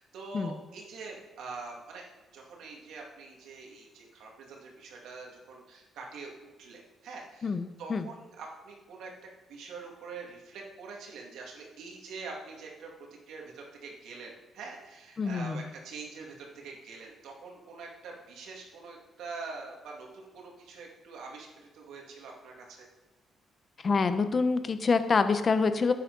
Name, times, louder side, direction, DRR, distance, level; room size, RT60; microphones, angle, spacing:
voice 1, 0.0-2.0 2.3-6.3 6.6-9.1 9.5-22.9, right 4 dB, 80° right, -1 dB, 2.4 m, -44 dB
voice 2, 7.4-8.1 15.2-15.6 23.8-25.9, left 4 dB, 40° left, 10 dB, 0.9 m, -26 dB
11.0 x 8.4 x 4.1 m, 1.2 s
cardioid pair, 90°, 0 cm